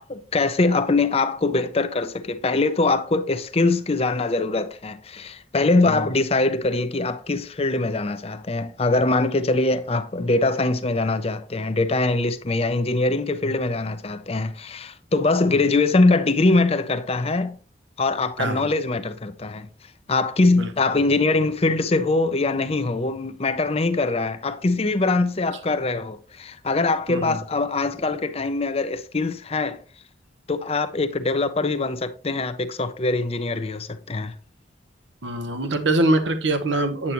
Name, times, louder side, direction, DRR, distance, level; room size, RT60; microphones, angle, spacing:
voice 1, 0.0-17.6 18.0-19.7 20.1-29.8 30.5-34.3, left 3 dB, 35° left, 0.6 m, -23 dB
voice 2, 18.4-18.7 20.6-20.7 27.1-27.4 35.2-37.1, right 2 dB, 75° right, 1.0 m, -24 dB
8.6 x 8.0 x 3.0 m
head